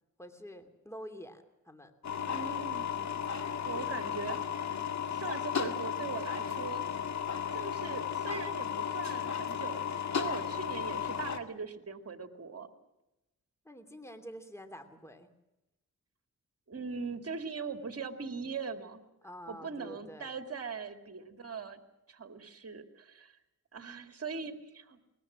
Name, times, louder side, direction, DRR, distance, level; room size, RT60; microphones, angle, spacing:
voice 1, 0.2-1.9 13.6-15.3 19.2-20.3, equal, 10° left, 8 dB, 2.7 m, -47 dB
sound 1, 2.0-11.4, left 8 dB, 60° left, 2.1 m, -34 dB
voice 2, 2.3-3.0 3.6-4.4 5.1-6.8 7.5-9.8 10.1-12.7 16.7-19.0 19.5-21.8 22.1-23.4 23.7-25.0, right 5 dB, 50° right, 7 dB, 2.4 m, -40 dB
22.0 x 20.5 x 7.5 m, 0.94 s
cardioid pair, 70°, 32 cm